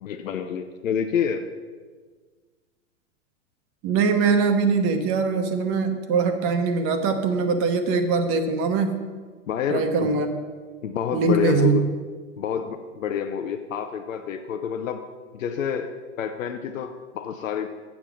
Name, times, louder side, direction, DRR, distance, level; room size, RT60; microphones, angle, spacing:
voice 1, 0.0-1.5 9.5-10.2 10.8-11.8 12.4-15.0 15.3-15.9 16.2-17.7, left 7 dB, 85° left, 7 dB, 0.7 m, -28 dB
voice 2, 3.8-9.0 9.7-10.3 11.1-11.8, right 4 dB, 35° right, 7 dB, 1.0 m, -22 dB
7.3 x 7.1 x 6.2 m, 1.5 s
hypercardioid pair, 120°, 38 cm